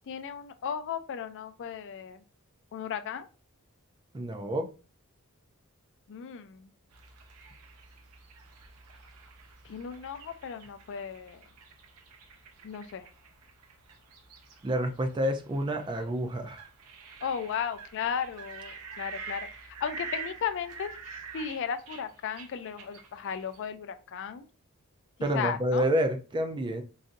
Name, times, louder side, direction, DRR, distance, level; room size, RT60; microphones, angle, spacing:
voice 1, 0.1-2.2 2.7-3.3 6.1-6.7 9.6-11.4 12.6-13.1 17.2-24.5 25.3-25.9, left 7 dB, 55° left, 10 dB, 0.3 m, -35 dB
voice 2, 4.1-4.7 14.6-16.6 25.2-26.8, equal, 20° right, 6 dB, 0.3 m, -28 dB
sound 1, 6.9-23.7, right 5 dB, 90° right, 0.7 m, -47 dB
3.9 x 2.5 x 2.5 m, 0.35 s
head